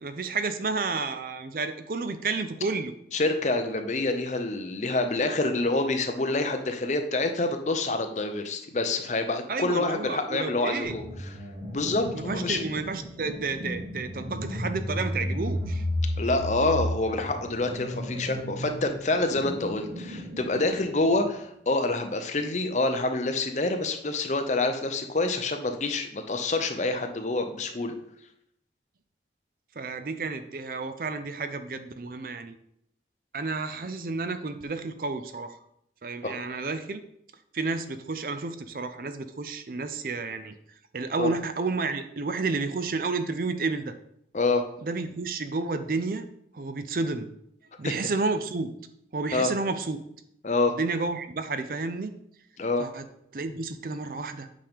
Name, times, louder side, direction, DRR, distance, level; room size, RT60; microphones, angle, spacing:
voice 1, 0.0-2.9 9.5-11.0 12.1-15.8 29.8-32.6 33.3-35.6 36.0-37.0 37.5-40.5 40.9-43.9 44.8-46.2 46.5-47.3 47.8-48.7 49.1-50.0 50.7-52.1 52.8-53.0 53.3-54.5, right 3 dB, 50° right, 10 dB, 0.5 m, -31 dB
voice 2, 3.1-11.3 11.7-12.6 16.2-27.9 36.2-36.3 41.2-41.3 44.3-44.6 47.8-47.9 49.3-49.5 50.4-50.7 52.6-52.9, left 2 dB, 40° left, 6 dB, 0.7 m, -27 dB
sound 1, 10.8-21.3, left 1 dB, 85° right, 1.9 m, -34 dB
8.4 x 5.1 x 3.6 m, 0.75 s
head